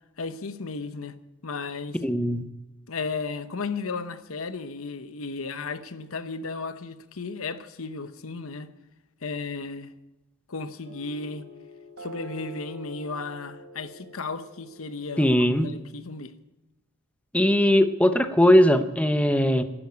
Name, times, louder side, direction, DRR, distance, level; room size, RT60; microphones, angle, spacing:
voice 1, 0.2-1.2 1.4-2.0 2.9-8.7 9.2-9.9 10.5-11.5 12.0-16.3, left 4 dB, 70° left, 0.9 m, -34 dB
voice 2, 2.0-2.4 15.2-15.7 17.3-19.6, equal, 5° left, 0.8 m, -20 dB
sound 1, 10.8-15.9, right 1 dB, 60° right, 4.1 m, -45 dB
11.5 x 11.0 x 9.5 m
head